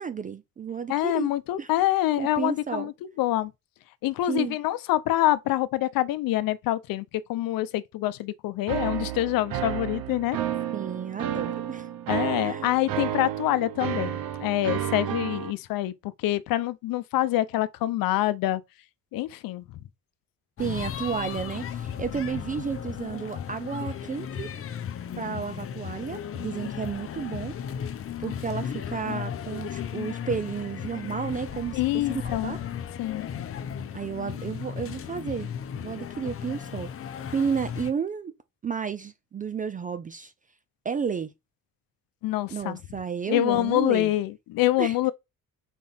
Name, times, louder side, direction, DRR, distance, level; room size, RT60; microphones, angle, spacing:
voice 1, 0.0-1.3 1.6-1.7 2.2-2.9 4.3-4.6 10.7-11.9 12.4-12.7 20.6-24.5 25.2-27.6 28.2-31.8 32.1-32.6 33.9-36.9 37.3-38.3 38.6-40.3 40.8-41.3 42.5-44.1 44.8-44.9, right 6 dB, 25° right, 0.4 m, -32 dB
voice 2, 0.9-3.5 4.0-10.4 12.1-18.6 19.1-19.6 31.7-32.6 33.0-33.8 42.2-42.8 43.3-45.1, left 15 dB, 90° left, 0.6 m, -26 dB
sound 1, 8.7-15.5, right 11 dB, 85° right, 1.0 m, -31 dB
sound 2, 20.6-37.9, left 8 dB, 40° left, 0.7 m, -35 dB
5.6 x 4.5 x 4.3 m
cardioid pair, 145°, 33 cm